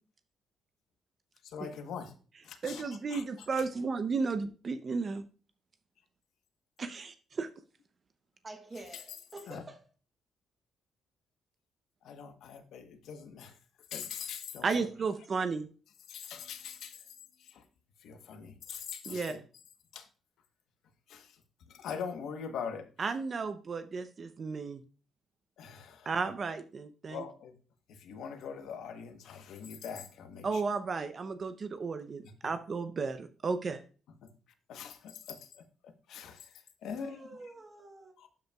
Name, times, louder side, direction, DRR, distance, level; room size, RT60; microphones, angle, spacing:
voice 1, 1.4-2.1 2.4-2.8 3.1-3.2 3.5-3.7 8.9-9.2 9.5-9.6 12.0-13.6 13.9-14.9 16.1-17.6 18.0-19.4 19.9-20.1 21.1-21.4 21.7-22.9 25.6-26.1 27.1-27.6 27.9-30.6 34.2-34.3 34.7-37.3 38.2-38.3, left 7 dB, 80° left, 1.0 m, -43 dB
voice 2, 2.6-5.2 6.8-7.5 14.6-15.7 19.1-19.3 23.0-24.8 26.1-27.2 30.4-33.8, right 4 dB, 45° right, 0.6 m, -33 dB
voice 3, 8.4-9.8 36.9-38.2, right 2 dB, 25° right, 1.0 m, -48 dB
12.0 x 5.3 x 2.3 m
cardioid pair, 90°, 0 cm